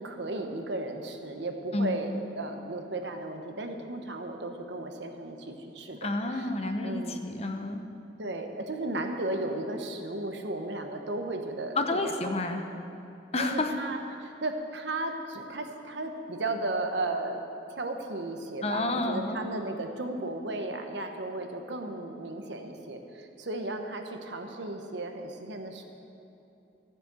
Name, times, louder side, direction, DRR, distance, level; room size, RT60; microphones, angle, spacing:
voice 1, 0.0-6.5 6.8-7.2 8.2-12.1 12.5-12.6 13.4-17.4 17.8-25.8, right 2 dB, 75° right, 4 dB, 1.2 m, -35 dB
voice 2, 6.0-7.8 11.7-12.6 13.3-13.8 18.6-19.4, left 2 dB, 35° left, 5 dB, 0.9 m, -30 dB
14.0 x 7.6 x 8.2 m, 2.8 s
head